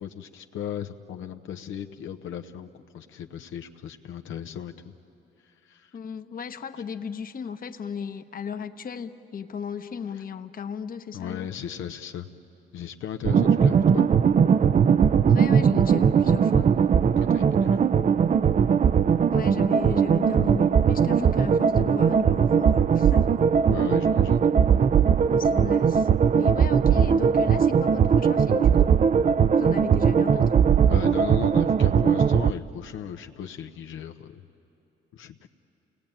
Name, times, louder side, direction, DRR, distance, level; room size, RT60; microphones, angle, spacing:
voice 1, 0.0-4.9 5.6-5.9 11.1-12.3 12.7-14.1 17.2-17.8 23.7-24.4 30.9-34.5 35.1-35.5, left 9 dB, 80° left, 6 dB, 0.9 m, -36 dB
voice 2, 5.9-11.5 15.3-16.7 19.3-23.3 25.3-28.9 29.6-30.6, left 6 dB, 45° left, 8 dB, 1.0 m, -35 dB
sound 1, 13.2-32.5, right 7 dB, 40° right, 0.5 m, -20 dB
29.0 x 19.0 x 8.8 m, 2.9 s
cardioid pair, 90°, 20 cm